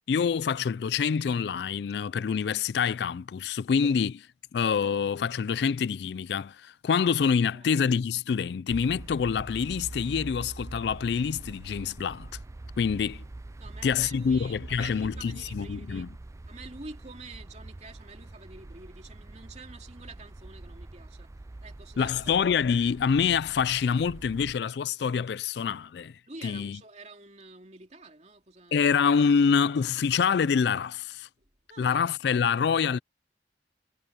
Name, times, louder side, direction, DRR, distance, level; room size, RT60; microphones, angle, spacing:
voice 1, 0.1-4.1 4.5-12.3 12.8-13.2 13.8-16.1 22.0-26.8 28.7-31.3 31.8-33.0, left 6 dB, 60° left, 0.3 m, -26 dB
sound 1, 8.7-24.5, right 2 dB, 15° right, 0.3 m, -44 dB
voice 2, 13.6-16.1 16.5-21.3 21.6-22.4 26.3-28.9 31.7-32.2, right 3 dB, 35° right, 2.7 m, -47 dB
head